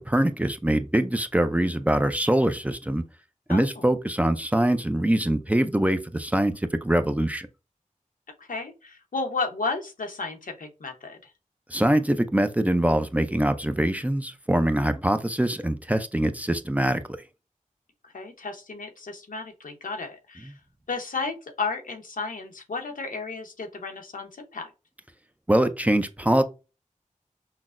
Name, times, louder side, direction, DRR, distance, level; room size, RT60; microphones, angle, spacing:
voice 1, 0.0-3.0 3.5-7.5 11.7-17.2 25.5-26.4, right 1 dB, 10° right, 0.4 m, -23 dB
voice 2, 3.5-3.9 8.4-11.3 18.0-20.5 20.9-24.7, left 4 dB, 90° left, 0.8 m, -33 dB
5.8 x 2.0 x 2.4 m
wide cardioid pair, 75°, 14 cm